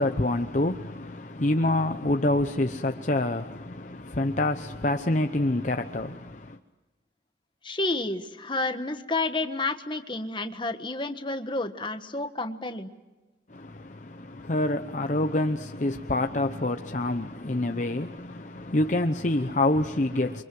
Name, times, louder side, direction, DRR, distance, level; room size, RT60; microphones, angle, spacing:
voice 1, 0.0-6.6 13.5-20.4, left 2 dB, 40° left, 0.9 m, -27 dB
voice 2, 7.6-12.9, left 2 dB, 25° left, 1.5 m, -30 dB
29.5 x 24.5 x 7.8 m
head